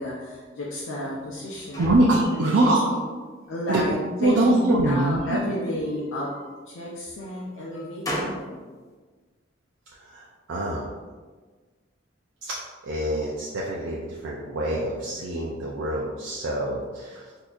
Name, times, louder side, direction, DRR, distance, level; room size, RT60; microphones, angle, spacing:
voice 1, 0.0-1.8 2.3-3.0 3.5-4.0 4.2-6.3 6.7-8.7, left 1 dB, 80° left, -6 dB, 0.5 m, -32 dB
sound 1, 1.0-3.0 3.4-4.2 5.1-6.6 7.2-8.5, equal, 15° left, 0.5 m, -38 dB
voice 2, 1.8-2.8 3.7-3.8 4.2-5.2 9.9-10.9 12.4-17.3, right 1 dB, 75° right, -4 dB, 0.5 m, -24 dB
4.2 x 2.7 x 2.4 m, 1.4 s
head